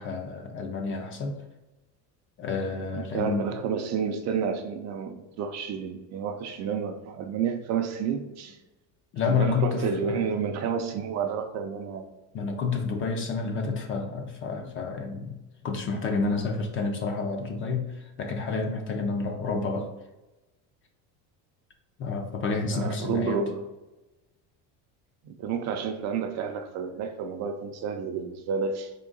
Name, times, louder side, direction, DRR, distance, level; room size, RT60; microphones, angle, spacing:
voice 1, 0.0-1.4 2.4-3.5 9.1-10.2 12.3-19.9 22.0-23.5, left 4 dB, 35° left, 4 dB, 0.5 m, -29 dB
voice 2, 2.9-8.6 9.3-12.1 22.7-23.6 25.2-28.9, right 6 dB, 45° right, 5 dB, 0.4 m, -30 dB
3.7 x 3.1 x 3.8 m, 1.1 s
cardioid pair, 155°, 38 cm